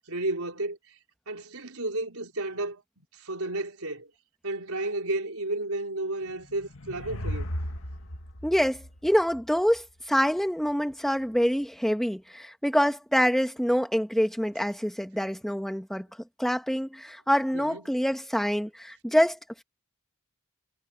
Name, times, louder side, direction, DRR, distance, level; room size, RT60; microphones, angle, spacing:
voice 1, 0.1-0.8 1.3-4.1 4.4-7.4 17.5-17.8, right 2 dB, 75° right, 4.5 m, -32 dB
sound 1, 6.3-9.8, equal, 65° left, 2.3 m, -36 dB
voice 2, 8.4-16.1 16.4-19.6, equal, ahead, 1.5 m, -26 dB
head